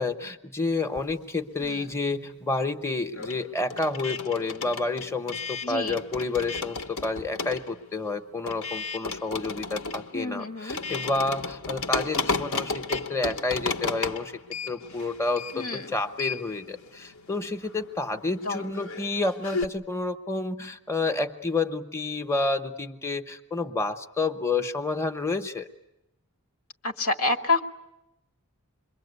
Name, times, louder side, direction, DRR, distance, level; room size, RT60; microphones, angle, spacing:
voice 1, 0.0-14.3 14.7-25.7, left 3 dB, 10° left, 6 dB, 0.9 m, -29 dB
sound 1, 0.8-2.1 2.3-19.6, left 4 dB, 65° left, 1.0 m, -34 dB
voice 2, 5.6-6.0 10.1-10.8 15.5-15.9 18.4-18.7 26.8-27.6, left 3 dB, 90° left, 7 dB, 1.6 m, -28 dB
27.5 x 22.5 x 8.2 m, 0.90 s
head